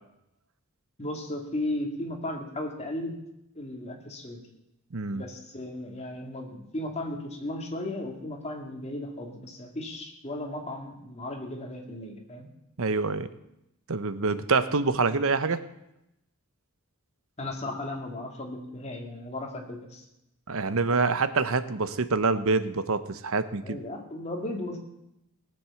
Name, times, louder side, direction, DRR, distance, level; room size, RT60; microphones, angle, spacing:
voice 1, 1.0-3.2 3.5-4.4 5.1-12.5 17.4-20.0 23.6-24.8, left 1 dB, 30° left, 2 dB, 2.2 m, -35 dB
voice 2, 4.9-5.2 12.8-13.3 13.9-15.6 20.5-23.8, right 4 dB, 65° right, 13 dB, 0.9 m, -26 dB
18.5 x 7.7 x 7.0 m, 0.85 s
head